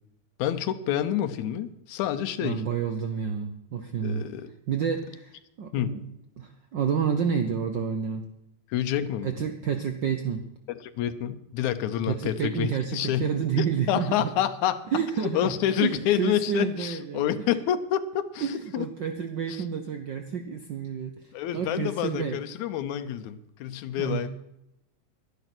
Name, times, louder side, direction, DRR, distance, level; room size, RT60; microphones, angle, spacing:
voice 1, 0.4-2.6 4.0-4.5 5.7-6.0 8.7-9.3 10.7-13.3 13.6-14.9 15.2-18.9 19.5-19.6 21.3-24.3, left 10 dB, 85° left, 10 dB, 2.2 m, -28 dB
voice 2, 2.4-4.3 4.7-6.0 6.4-8.2 9.2-10.5 12.1-14.3 14.9-15.5 15.8-17.2 18.4-22.4 24.0-24.2, right 7 dB, 85° right, 6 dB, 1.0 m, -29 dB
12.0 x 10.5 x 6.1 m, 0.84 s
omnidirectional pair, 3.3 m